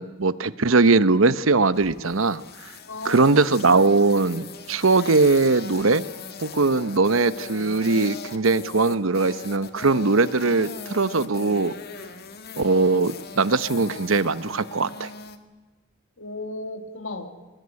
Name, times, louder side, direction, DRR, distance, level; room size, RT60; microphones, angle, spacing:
voice 1, 0.0-2.4 3.0-6.0 6.4-11.7 12.6-15.1, right 3 dB, 85° right, 15 dB, 0.9 m, -20 dB
sound 1, 1.7-15.4, left 4 dB, 50° left, 2.0 m, -40 dB
voice 2, 2.9-3.4 16.2-17.3, left 2 dB, 75° left, 7 dB, 2.5 m, -34 dB
25.0 x 21.5 x 9.7 m, 1.2 s
head